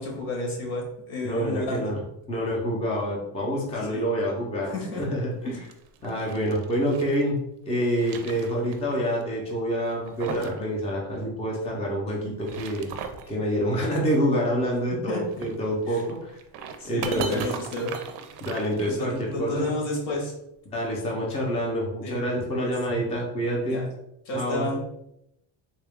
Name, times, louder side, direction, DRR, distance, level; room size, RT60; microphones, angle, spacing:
voice 1, 0.0-1.9 3.9-4.0 4.7-5.0 15.1-15.2 15.9-16.0 16.8-17.9 18.8-20.3 22.0-22.2 22.5-22.7 23.7-23.9 24.2-24.8, left 2 dB, 80° left, -1 dB, 1.5 m, -31 dB
voice 2, 1.2-2.0 2.3-5.7 6.0-12.9 13.3-16.4 16.8-17.4 18.4-19.7 20.7-23.8 24.3-24.7, equal, 15° left, -3 dB, 0.5 m, -27 dB
sound 1, 5.4-7.2 7.7-8.9 9.2-9.3 9.8-10.6 10.9-11.0 12.2-13.3 15.3-19.3, right 6 dB, 60° right, 0.5 m, -38 dB
3.7 x 2.3 x 3.4 m, 0.80 s
cardioid pair, 170°, 47 cm